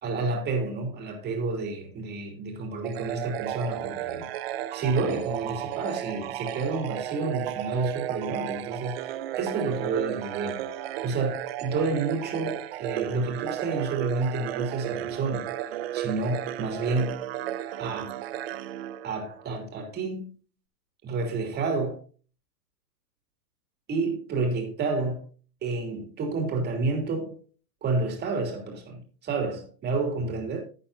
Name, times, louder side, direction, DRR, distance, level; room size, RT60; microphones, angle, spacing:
voice 1, 0.0-4.3 4.7-10.7 11.0-15.5 15.9-17.2 17.8-18.2 19.0-20.3 21.0-22.0 23.9-25.2 25.6-27.4 27.8-30.6, right 3 dB, 20° right, 2.9 m, -30 dB
sound 1, 2.8-19.6, right 12 dB, 40° right, 0.6 m, -34 dB
12.5 x 8.9 x 2.7 m
hypercardioid pair, 140°, 49 cm